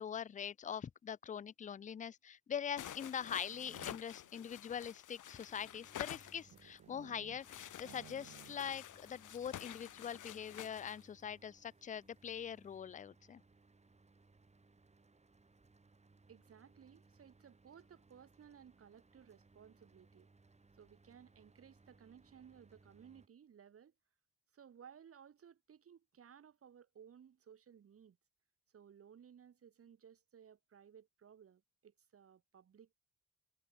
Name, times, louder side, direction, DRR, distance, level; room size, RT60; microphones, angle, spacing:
voice 1, 0.0-13.4, left 8 dB, 25° left, 0.4 m, -43 dB
sound 1, 2.8-6.8 7.4-11.0, left 11 dB, 85° left, 1.8 m, -50 dB
sound 2, 3.3-4.3 4.9-7.5 7.8-8.9 9.1-9.2 9.5-9.9, right 10 dB, 70° right, 2.4 m, -60 dB
Mechanical fan, 5.5-23.3, right 3 dB, 20° right, 5.4 m, -67 dB
voice 2, 16.3-20.3 20.7-23.9 24.5-28.2 28.7-32.9, right 8 dB, 50° right, 1.8 m, -60 dB
wide cardioid pair, 145°, 30 cm